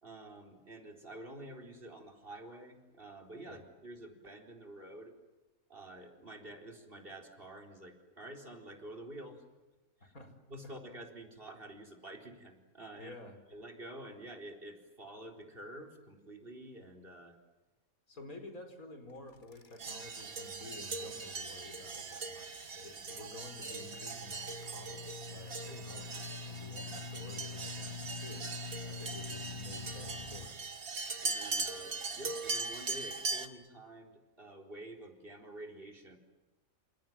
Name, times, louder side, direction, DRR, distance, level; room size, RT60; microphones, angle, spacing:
voice 1, 0.0-5.1 5.7-9.5 10.0-10.1 10.5-13.1 13.5-17.4 18.2-18.3 25.7-25.8 31.2-36.2, right 1 dB, 40° right, 3 dB, 4.5 m, -49 dB
voice 2, 10.0-10.3 13.0-13.4 18.1-28.5 28.9-30.8, left 2 dB, 90° left, 7 dB, 5.3 m, -51 dB
sound 1, 19.3-19.9 20.2-20.5 21.2-21.5 22.0-30.5, left 5 dB, 35° left, 1.5 m, -46 dB
sound 2, 19.8-33.5, right 3 dB, 90° right, 2.4 m, -40 dB
28.5 x 28.0 x 7.5 m, 1.1 s
omnidirectional pair, 1.5 m